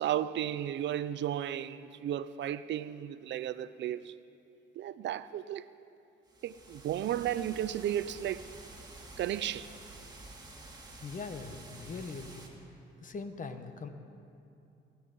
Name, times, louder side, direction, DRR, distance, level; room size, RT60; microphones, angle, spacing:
voice 1, 0.0-4.1 4.8-5.7 6.4-8.5 9.2-9.7, right 11 dB, 65° right, 0.5 m, -34 dB
sound 1, 6.3-12.5, right 2 dB, 20° right, 2.5 m, -50 dB
voice 2, 11.0-12.5 13.0-13.9, left 4 dB, 40° left, 1.1 m, -41 dB
20.0 x 11.5 x 5.4 m
cardioid pair, 90°, 20 cm